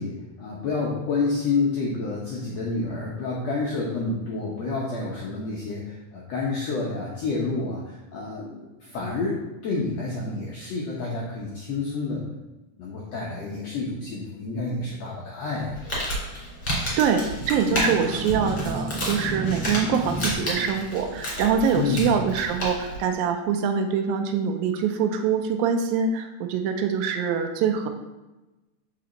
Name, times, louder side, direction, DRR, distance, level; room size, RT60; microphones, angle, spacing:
voice 1, 0.0-12.3 12.8-16.1 21.7-22.1, left 3 dB, 75° left, -4 dB, 1.5 m, -29 dB
Crumpling crinkling, 15.6-23.0, equal, 30° left, 2.3 m, -31 dB
voice 2, 17.0-27.9, right 6 dB, 85° right, 5 dB, 2.3 m, -24 dB
sound 1, 17.7-21.6, right 1 dB, 45° right, 0.9 m, -33 dB
6.7 x 5.2 x 3.9 m, 1.1 s
omnidirectional pair, 4.2 m